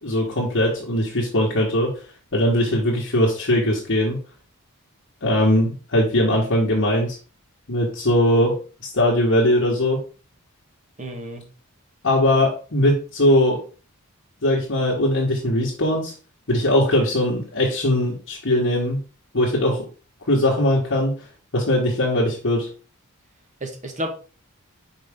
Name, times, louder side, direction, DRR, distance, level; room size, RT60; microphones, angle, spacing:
voice 1, 0.0-1.9 2.3-4.2 5.2-7.2 7.7-8.6 8.9-10.0 12.0-13.6 14.4-16.1 16.5-19.0 19.3-19.8 20.3-21.1 21.5-22.7, left 1 dB, 60° left, -5 dB, 1.7 m, -20 dB
voice 2, 11.0-11.4 23.6-24.2, equal, 35° right, 2 dB, 1.5 m, -31 dB
5.6 x 5.1 x 3.7 m, 0.36 s
head